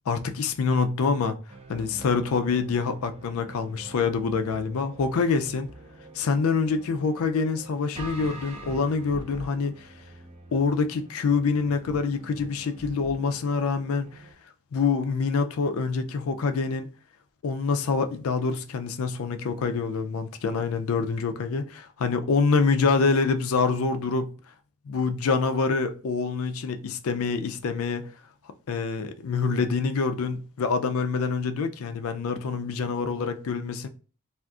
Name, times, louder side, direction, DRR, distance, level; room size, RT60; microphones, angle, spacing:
voice 1, 0.1-1.4 1.7-5.7 6.1-9.9 10.5-14.2 14.7-16.9 17.4-24.3 24.9-28.1 28.7-33.9, left 4 dB, 75° left, 0.4 m, -26 dB
sound 1, 1.5-14.3, right 1 dB, 25° right, 0.5 m, -45 dB
2.4 x 2.3 x 3.6 m
head